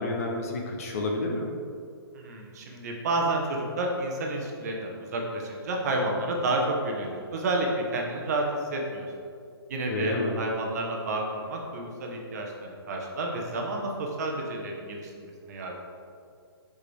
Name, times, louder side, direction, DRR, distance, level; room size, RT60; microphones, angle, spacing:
voice 1, 0.0-1.5 9.9-10.4, left 2 dB, 35° left, 2 dB, 0.6 m, -30 dB
voice 2, 2.1-8.5 8.7-9.1 9.7-15.7, right 2 dB, 40° right, 0 dB, 0.9 m, -30 dB
6.6 x 4.9 x 3.3 m, 2.3 s
hypercardioid pair, 170°, 14 cm